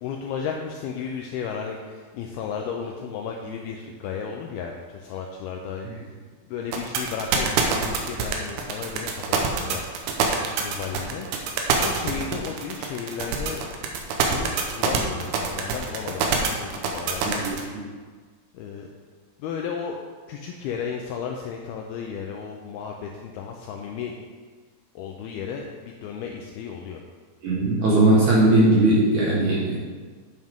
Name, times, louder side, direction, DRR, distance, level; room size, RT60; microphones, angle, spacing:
voice 1, 0.0-6.1 6.4-9.9 10.6-11.3 11.8-13.9 14.2-17.6 18.5-18.9 19.4-20.0 20.3-24.1 25.0-27.0, left 6 dB, 85° left, 2 dB, 2.2 m, -34 dB
sound 1, 6.7-17.6, right 6 dB, 75° right, 2.7 m, -24 dB
voice 2, 17.2-17.5 27.4-29.8, right 2 dB, 60° right, -6 dB, 2.3 m, -19 dB
9.4 x 7.8 x 3.6 m, 1.5 s
omnidirectional pair, 5.0 m